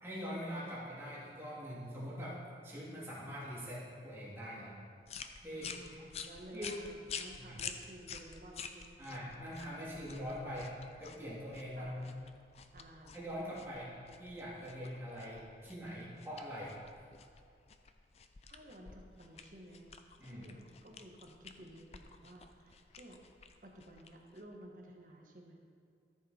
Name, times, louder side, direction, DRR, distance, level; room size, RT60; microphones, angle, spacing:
voice 1, 0.0-4.7 5.4-5.8 6.5-6.7 7.4-7.6 9.0-12.2 13.1-16.7 20.2-20.5, equal, 15° right, -8 dB, 2.8 m, -43 dB
sound 1, 5.0-24.6, left 6 dB, 35° left, 0.5 m, -50 dB
voice 2, 5.5-9.1 9.7-10.0 11.7-12.0 12.7-13.2 13.7-13.8 18.4-19.9 20.3-23.2 23.6-25.6, right 1 dB, 50° right, 0 dB, 1.3 m, -54 dB
13.5 x 7.2 x 4.3 m, 2.3 s
head